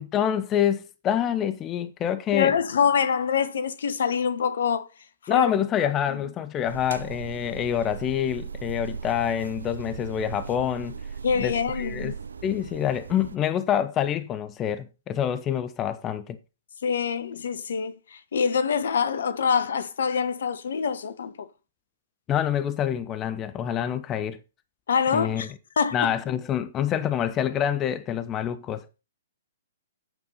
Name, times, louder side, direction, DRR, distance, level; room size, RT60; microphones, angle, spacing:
voice 1, 0.0-2.5 5.3-11.0 11.4-12.1 12.4-16.4 22.3-24.4 25.1-25.4 25.9-28.9, left 10 dB, 25° left, 0.7 m, -26 dB
voice 2, 2.3-4.9 5.2-5.5 5.8-6.2 11.2-12.1 16.8-21.5 24.9-26.1, left 6 dB, 60° left, 1.1 m, -25 dB
sound 1, 6.6-13.4, right 6 dB, 70° right, 0.6 m, -37 dB
9.0 x 7.1 x 5.5 m
figure-of-eight pair, 115°, 0 cm